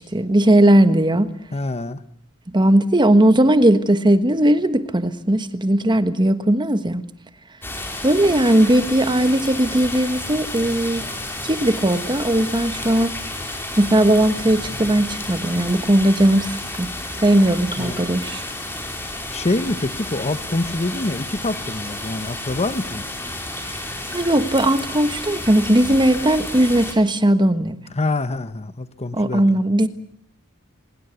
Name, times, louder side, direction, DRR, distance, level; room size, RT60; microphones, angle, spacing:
voice 1, 0.0-1.3 2.5-7.0 8.0-11.1 11.4-13.1 13.8-16.9 17.2-18.4 24.1-27.8 29.1-29.9, right 1 dB, 20° right, 1.3 m, -18 dB
voice 2, 1.5-2.0 17.8-18.0 19.3-23.0 27.9-29.6, left 2 dB, 30° left, 1.0 m, -25 dB
sound 1, 7.6-26.9, left 1 dB, 10° left, 4.8 m, -31 dB
24.5 x 22.0 x 8.3 m
head